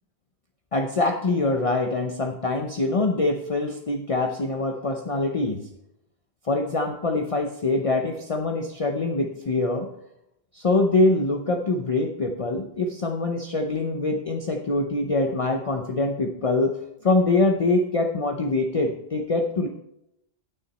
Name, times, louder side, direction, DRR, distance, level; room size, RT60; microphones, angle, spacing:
voice 1, 0.7-5.6 6.4-9.9 10.5-16.7 17.0-19.7, left 2 dB, 35° left, 3 dB, 0.7 m, -24 dB
9.6 x 9.4 x 4.2 m, 0.81 s
omnidirectional pair, 1.1 m